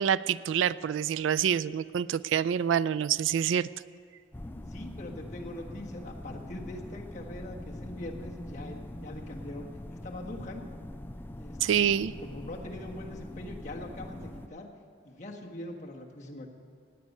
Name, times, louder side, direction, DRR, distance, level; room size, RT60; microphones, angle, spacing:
voice 1, 0.0-3.7 11.6-12.1, right 8 dB, 75° right, 19 dB, 0.3 m, -27 dB
sound 1, 4.3-14.5, left 1 dB, 10° left, 0.3 m, -42 dB
voice 2, 4.7-10.6 11.4-11.9 12.2-14.7 15.0-16.5, left 1 dB, 35° left, -1 dB, 1.5 m, -42 dB
17.5 x 9.4 x 5.4 m, 2.3 s
head